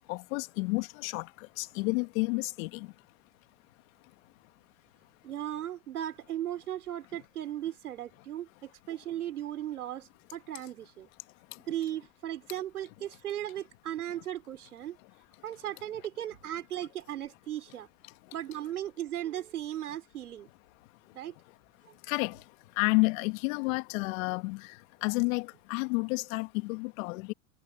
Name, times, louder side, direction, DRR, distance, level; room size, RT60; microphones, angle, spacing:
voice 1, 0.1-2.9 22.1-22.4 22.8-24.8 25.0-27.3, left 27 dB, 65° left, 1.8 m, -30 dB
voice 2, 5.2-11.1 11.7-15.0 15.4-17.9 18.3-20.5 21.1-21.3, right 12 dB, 90° right, 3.9 m, -37 dB
hypercardioid pair, 95°, 43 cm